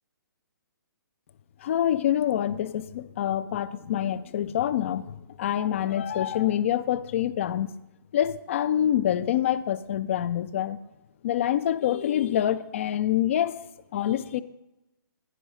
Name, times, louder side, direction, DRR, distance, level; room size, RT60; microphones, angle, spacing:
voice 1, 1.6-7.7 8.1-10.8 11.2-13.6 13.9-14.4, left 11 dB, 35° left, 0.4 m, -26 dB
10.0 x 5.3 x 6.2 m
figure-of-eight pair, 130°, 11 cm